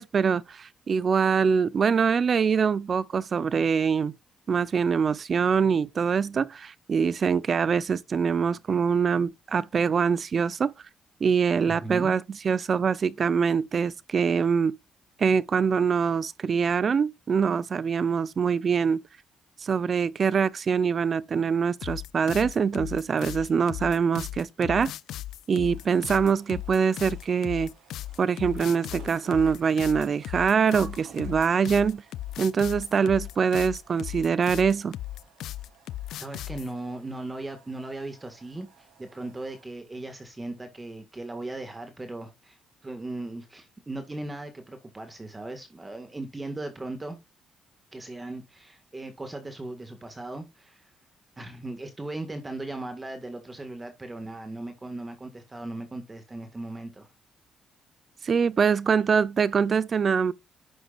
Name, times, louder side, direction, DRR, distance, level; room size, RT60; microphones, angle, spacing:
voice 1, 0.0-4.2 4.5-10.7 11.2-14.8 15.2-19.0 19.6-24.9 25.5-27.7 28.2-32.0 32.4-35.0 58.2-60.3, right 6 dB, 45° right, 0.6 m, -24 dB
voice 2, 11.7-12.1 36.1-47.2 47.9-50.9 51.4-57.1, right 2 dB, 20° right, 1.8 m, -38 dB
sound 1, 21.8-36.7, left 13 dB, 80° left, 0.4 m, -37 dB
sound 2, 25.6-39.6, right 7 dB, 85° right, 3.8 m, -54 dB
11.0 x 7.9 x 2.5 m
cardioid pair, 90°, 0 cm